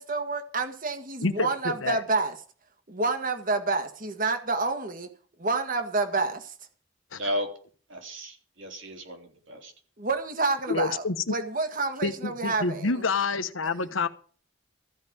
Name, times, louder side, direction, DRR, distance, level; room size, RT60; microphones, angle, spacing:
voice 1, 0.0-2.3 2.9-5.1 5.4-6.5 10.0-12.9, right 3 dB, 45° right, 1.7 m, -28 dB
voice 2, 1.2-2.0 7.1-7.2 10.7-11.4 12.0-14.1, left 4 dB, 85° left, 1.1 m, -28 dB
voice 3, 7.1-7.5 7.9-9.7, equal, 70° right, 3.7 m, -34 dB
14.5 x 5.5 x 9.4 m
head